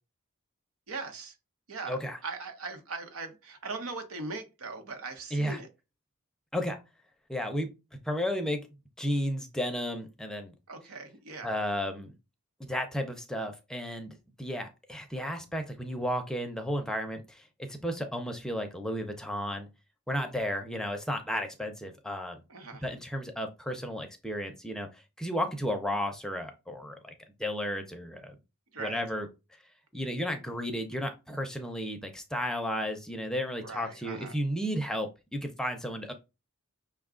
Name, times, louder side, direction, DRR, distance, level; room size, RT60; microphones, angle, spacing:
voice 1, 0.9-1.4 1.7-5.7 10.7-11.6 22.5-22.8 28.7-29.0 33.6-34.4, right 3 dB, 90° right, 6 dB, 1.0 m, -40 dB
voice 2, 1.9-2.2 5.3-5.6 6.5-6.8 7.3-7.7 8.1-8.6 9.0-10.5 11.4-12.1 12.6-19.7 20.1-22.4 22.8-24.9 25.2-27.1 27.4-28.3 28.8-29.3 29.9-36.1, equal, 5° left, 5 dB, 0.5 m, -33 dB
5.7 x 2.3 x 3.6 m, 0.27 s
head